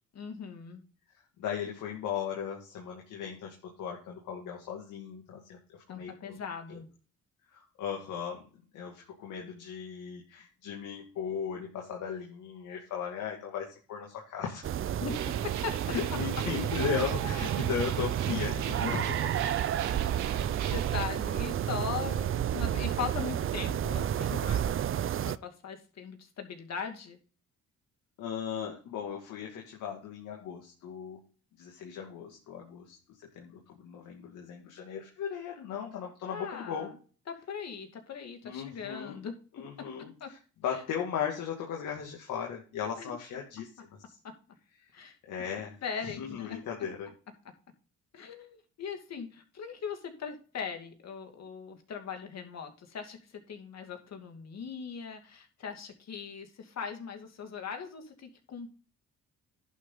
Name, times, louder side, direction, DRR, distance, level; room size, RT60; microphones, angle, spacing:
voice 1, 0.1-0.8 5.9-6.9 15.0-15.2 15.4-15.8 19.4-19.5 20.7-24.7 25.3-27.2 36.2-36.9 37.3-39.9 40.2-40.3 42.9-43.1 44.2-44.3 44.9-45.2 45.8-46.6 48.1-53.2 53.5-58.7, left 6 dB, 60° left, 5 dB, 2.4 m, -40 dB
voice 2, 1.4-6.4 6.7-6.8 7.5-8.5 8.7-14.7 15.9-19.5 28.2-31.2 31.6-33.0 33.3-36.9 38.4-39.2 39.5-44.2 45.0-45.8 46.0-47.1, left 8 dB, 85° left, 0 dB, 2.3 m, -37 dB
sound 1, 14.6-25.4, right 10 dB, 45° right, 0.5 m, -31 dB
sound 2, 15.1-21.0, right 10 dB, 75° right, 1.1 m, -41 dB
11.0 x 6.5 x 3.8 m, 0.37 s
cardioid pair, 90°, 30 cm